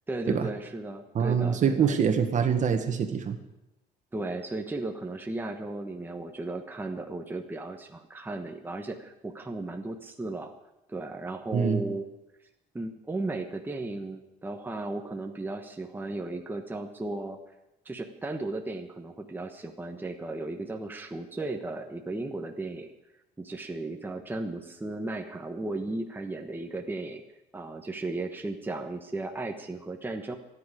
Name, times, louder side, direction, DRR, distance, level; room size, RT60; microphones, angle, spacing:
voice 1, 0.1-1.9 4.1-10.5 10.9-12.1 12.7-17.4 17.8-22.9 23.4-27.2 27.5-30.4, right 2 dB, 10° right, 3 dB, 1.2 m, -35 dB
voice 2, 1.1-3.4 11.5-11.8, right 7 dB, 45° right, 6 dB, 1.7 m, -25 dB
26.5 x 10.0 x 5.0 m, 0.91 s
cardioid pair, 110°, 17 cm